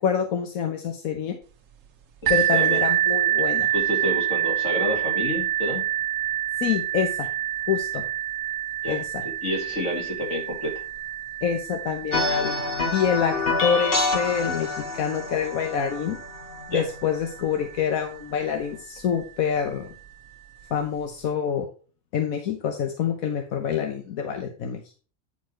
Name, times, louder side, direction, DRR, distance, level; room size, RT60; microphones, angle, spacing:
voice 1, 0.0-1.4 2.3-3.7 6.6-7.3 7.7-8.0 8.9-9.2 11.4-12.6 12.9-13.3 13.6-16.2 16.7-19.9 20.7-21.7 22.1-24.8, left 7 dB, 85° left, 4 dB, 1.3 m, -26 dB
voice 2, 2.2-2.8 3.7-5.8 8.8-9.0 9.4-10.8 16.7-16.9, equal, 60° left, 0 dB, 2.7 m, -29 dB
sound 1, 2.3-17.8 18.6-18.7 19.2-19.3, right 12 dB, 70° right, 1.2 m, -28 dB
sound 2, 12.1-17.5, left 3 dB, 45° left, 1.8 m, -27 dB
9.9 x 4.7 x 4.5 m, 0.38 s
omnidirectional pair, 1.4 m